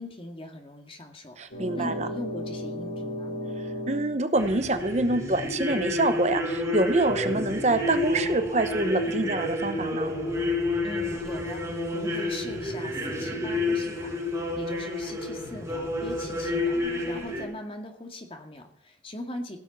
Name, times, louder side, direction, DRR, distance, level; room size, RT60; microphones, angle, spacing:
voice 1, 0.0-1.4 1.8-3.4 10.8-19.6, left 1 dB, 30° left, 4 dB, 2.0 m, -40 dB
voice 2, 1.4-2.1 3.9-10.1, right 2 dB, 35° right, 10 dB, 0.8 m, -26 dB
sound 1, 1.5-4.2, left 1 dB, 85° left, 3.9 m, -34 dB
sound 2, 4.3-17.4, left 2 dB, 20° right, 5.0 m, -30 dB
16.5 x 7.1 x 7.2 m, 0.65 s
head